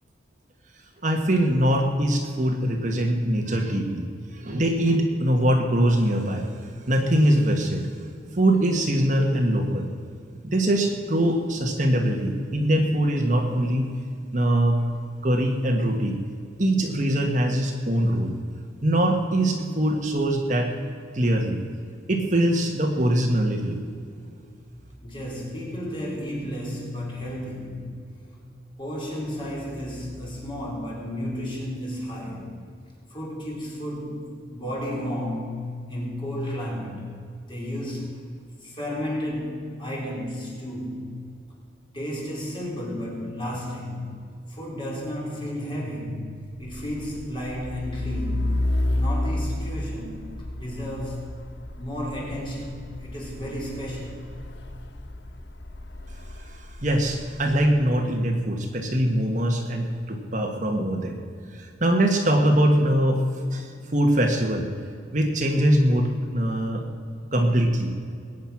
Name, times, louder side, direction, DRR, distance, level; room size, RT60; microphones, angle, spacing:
voice 1, 1.0-6.5 6.9-8.1 8.3-9.9 10.4-13.9 14.3-14.8 15.2-16.2 16.6-18.3 18.8-20.7 21.1-21.6 22.1-23.8 56.4-61.2 61.5-63.2 63.5-64.7 65.1-66.8 67.3-67.9, right 1 dB, 40° right, 2 dB, 1.4 m, -22 dB
voice 2, 25.0-28.0 28.8-32.6 33.1-37.1 37.4-38.2 38.6-41.2 41.9-44.2 44.5-46.3 46.6-48.6 49.0-51.3 51.8-54.2, equal, 25° left, -4 dB, 4.2 m, -32 dB
Truck, 46.6-57.9, left 1 dB, 65° left, 0.9 m, -32 dB
21.0 x 9.3 x 5.9 m, 2.3 s
head